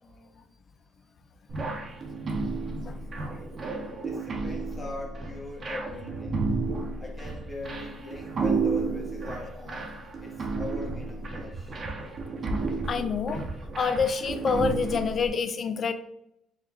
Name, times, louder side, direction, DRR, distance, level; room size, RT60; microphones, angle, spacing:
voice 1, 0.0-0.5 4.0-6.4 7.0-11.8, left 2 dB, 25° left, -1 dB, 1.2 m, -41 dB
sound 1, 1.5-15.3, right 3 dB, 40° right, 0.8 m, -32 dB
voice 2, 12.9-13.4 13.7-15.9, left 5 dB, 45° left, 9 dB, 0.4 m, -27 dB
4.7 x 2.3 x 3.3 m, 0.80 s
supercardioid pair, 80°, 0 cm